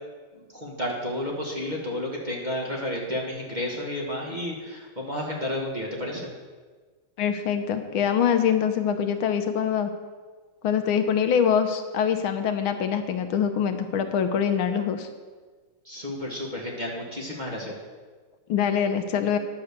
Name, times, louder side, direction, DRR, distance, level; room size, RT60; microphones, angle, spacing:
voice 1, 0.3-6.3 15.8-17.7, left 1 dB, 25° right, -2 dB, 1.4 m, -31 dB
voice 2, 7.2-9.9 10.6-15.1 18.5-19.4, left 8 dB, 75° left, 8 dB, 1.6 m, -24 dB
10.5 x 6.8 x 6.7 m, 1.4 s
omnidirectional pair, 2.3 m